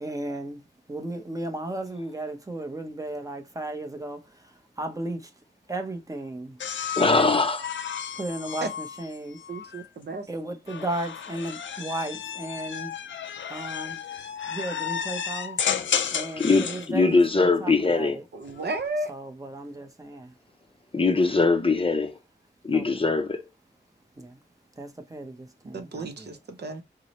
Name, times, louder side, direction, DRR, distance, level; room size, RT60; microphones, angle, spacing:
voice 1, 0.0-0.6 0.9-4.2 4.8-5.2 5.7-6.6 8.2-9.4 10.3-12.9 13.5-14.0 14.5-18.2 19.1-20.3 22.7-22.8 24.2-24.4 24.8-26.3, right 1 dB, 15° right, 0.7 m, -35 dB
sound 1, 6.6-9.9 10.7-16.9 18.3-18.9, left 8 dB, 75° left, 0.5 m, -33 dB
voice 2, 7.0-7.7 16.4-18.2 20.9-22.2 22.6-23.4, left 3 dB, 30° left, 0.6 m, -22 dB
voice 3, 9.5-10.3 18.3-19.1 25.7-26.8, right 2 dB, 60° right, 0.8 m, -33 dB
4.6 x 2.1 x 2.9 m
wide cardioid pair, 105°, 19 cm